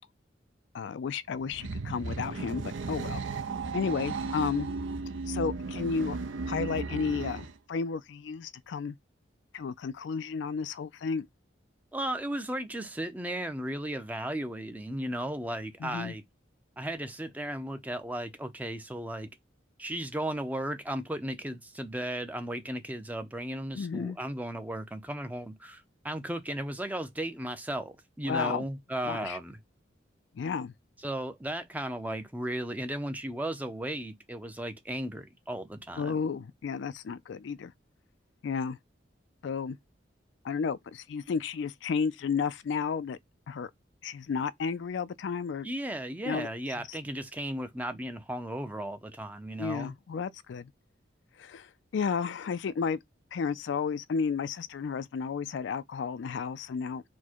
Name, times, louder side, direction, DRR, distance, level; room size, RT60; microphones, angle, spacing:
voice 1, 0.7-3.2 3.7-4.7 5.3-6.2 6.5-9.0 9.5-11.3 15.8-16.1 23.7-24.2 28.3-28.6 29.0-29.4 30.3-30.7 36.0-37.7 38.4-38.8 39.4-39.8 40.4-43.2 43.5-43.7 44.0-45.7 46.3-46.5 49.6-50.7 51.4-53.0 53.3-57.0, left 5 dB, 70° left, 0.3 m, -32 dB
sound 1, 1.3-7.6, right 4 dB, 75° right, 0.6 m, -35 dB
voice 2, 11.9-16.2 16.8-19.3 19.8-29.6 31.0-36.1 45.6-50.0, right 1 dB, 10° right, 0.5 m, -35 dB
4.4 x 2.1 x 4.4 m
head